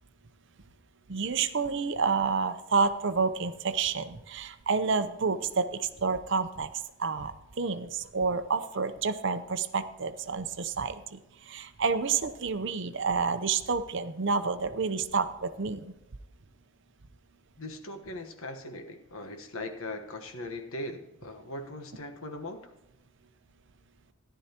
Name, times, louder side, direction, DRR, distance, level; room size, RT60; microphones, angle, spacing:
voice 1, 1.1-6.7 7.0-15.9, right 5 dB, 55° right, 10 dB, 0.7 m, -29 dB
voice 2, 17.6-22.7, left 1 dB, 70° left, 6 dB, 1.2 m, -40 dB
14.5 x 11.0 x 2.9 m, 0.94 s
head